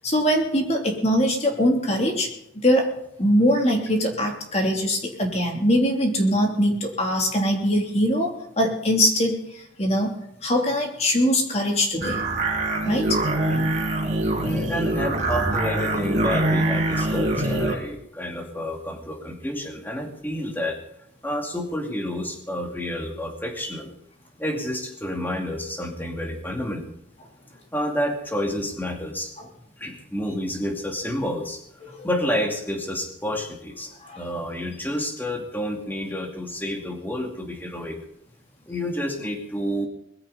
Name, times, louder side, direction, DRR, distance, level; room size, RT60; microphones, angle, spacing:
voice 1, 0.0-2.3 2.5-2.9 3.2-10.1 10.4-12.2 12.9-13.2 32.0-32.1 34.0-34.2, equal, 35° left, 1 dB, 3.1 m, -22 dB
sound 1, 12.0-17.8, right 2 dB, 35° right, 4.7 m, -24 dB
voice 2, 14.4-20.8 21.2-23.9 24.4-26.8 27.7-29.3 29.8-31.6 32.0-38.0 38.7-39.9, equal, 10° left, 2 dB, 2.5 m, -29 dB
21.0 x 15.0 x 4.2 m, 0.77 s
head